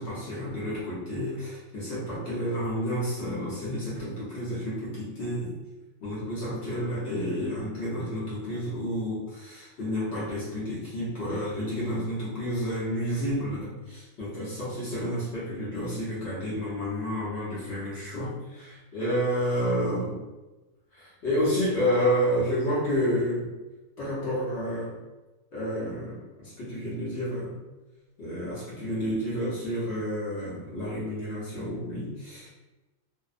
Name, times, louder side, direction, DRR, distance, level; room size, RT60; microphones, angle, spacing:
voice 1, 0.0-5.5 6.0-20.2 20.9-23.5 24.0-25.0 25.5-27.6 28.2-32.5, equal, 55° left, -9 dB, 1.0 m, -30 dB
2.7 x 2.0 x 2.4 m, 1.1 s
omnidirectional pair, 1.4 m